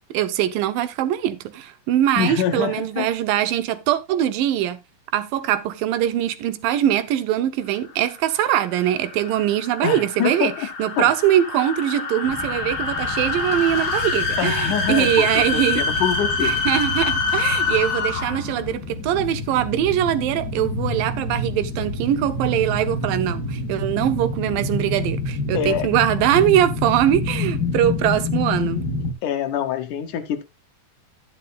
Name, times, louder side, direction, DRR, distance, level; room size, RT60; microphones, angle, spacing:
voice 1, 0.1-4.8 5.1-10.5 10.8-15.8 16.4-28.9, right 11 dB, 85° right, 2.6 m, -22 dB
voice 2, 2.2-3.1 9.8-10.7 11.0-11.1 14.4-16.6 25.5-25.9 29.2-30.4, left 9 dB, 70° left, 2.5 m, -25 dB
sound 1, 7.9-18.5, left 4 dB, 50° left, 3.4 m, -26 dB
sound 2, 12.2-29.1, left 2 dB, 90° left, 0.8 m, -29 dB
12.0 x 10.0 x 2.3 m
omnidirectional pair, 3.9 m